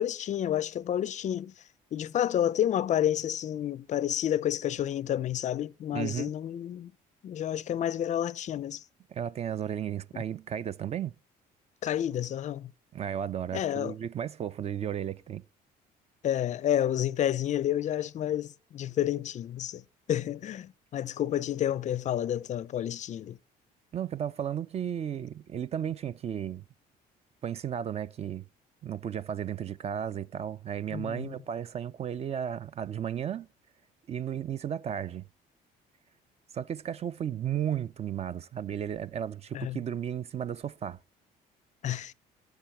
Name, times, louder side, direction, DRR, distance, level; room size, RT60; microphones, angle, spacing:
voice 1, 0.0-1.5 1.9-6.9 7.2-8.8 11.8-12.7 13.5-13.9 16.2-19.8 20.1-23.4 30.9-31.3 39.5-39.8 41.8-42.1, left 11 dB, 45° left, 0.4 m, -30 dB
voice 2, 5.9-6.3 9.1-11.1 12.9-15.4 23.9-26.6 27.4-28.4 28.8-33.5 34.1-35.2 36.5-41.0, right 9 dB, 40° right, 0.4 m, -34 dB
13.0 x 8.2 x 4.3 m
cardioid pair, 110°, 17 cm